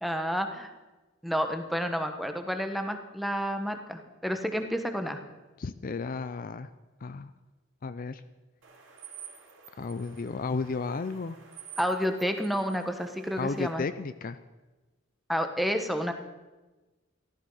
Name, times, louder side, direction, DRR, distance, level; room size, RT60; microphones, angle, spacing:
voice 1, 0.0-0.7 1.2-5.2 11.8-13.8 15.3-16.1, equal, ahead, 6 dB, 1.1 m, -30 dB
voice 2, 5.6-6.7 7.0-7.3 7.8-8.2 9.8-11.4 13.4-14.4, left 4 dB, 45° left, 12 dB, 0.5 m, -33 dB
sound 1, 8.6-13.7, right 7 dB, 65° right, 2.8 m, -50 dB
14.5 x 12.5 x 5.6 m, 1.2 s
head